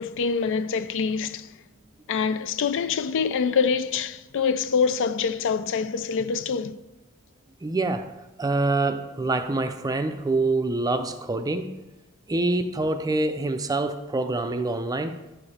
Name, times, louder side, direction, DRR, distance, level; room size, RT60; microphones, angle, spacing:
voice 1, 0.0-1.5 2.1-6.8, left 5 dB, 60° left, 0.4 m, -25 dB
voice 2, 7.6-8.1 8.4-11.7 12.3-15.2, right 2 dB, 15° right, 0.4 m, -26 dB
11.0 x 4.9 x 4.2 m
head